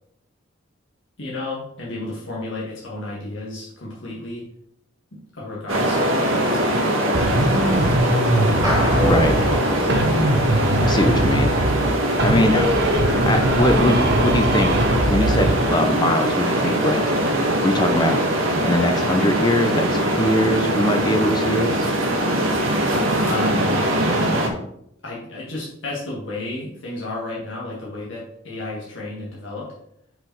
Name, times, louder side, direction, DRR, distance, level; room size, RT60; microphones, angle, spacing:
voice 1, 1.2-4.4 5.1-8.6 9.3-10.2 23.2-23.8 25.0-29.7, left 2 dB, 70° left, -5 dB, 1.7 m, -32 dB
sound 1, 5.7-24.5, right 1 dB, 80° right, 1.4 m, -22 dB
sound 2, 7.1-9.6 9.9-11.9 12.2-15.6, right 1 dB, 55° right, 1.0 m, -21 dB
sound 3, 8.6-11.1, equal, 20° right, 2.1 m, -26 dB
voice 2, 9.0-9.6 10.8-11.5 12.2-12.8 13.3-14.7 15.0-17.2 17.6-18.2 18.7-21.9, left 1 dB, 20° left, 6 dB, 0.7 m, -22 dB
6.1 x 5.0 x 4.6 m, 0.73 s
head